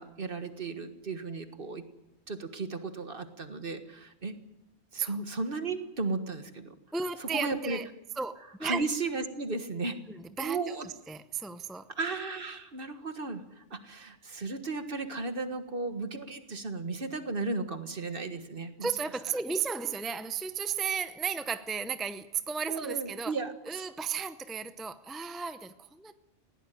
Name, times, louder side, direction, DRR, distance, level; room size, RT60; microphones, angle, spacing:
voice 1, 0.0-1.9 2.3-4.4 4.9-6.8 7.2-7.8 8.6-10.0 10.4-10.9 12.0-18.9 22.7-23.9, right 3 dB, 55° right, 9 dB, 1.7 m, -35 dB
voice 2, 6.9-7.9 8.2-8.8 10.1-11.9 18.8-23.3 23.6-26.1, right 6 dB, ahead, 11 dB, 0.6 m, -34 dB
20.0 x 17.0 x 9.2 m, 0.92 s
omnidirectional pair, 1.2 m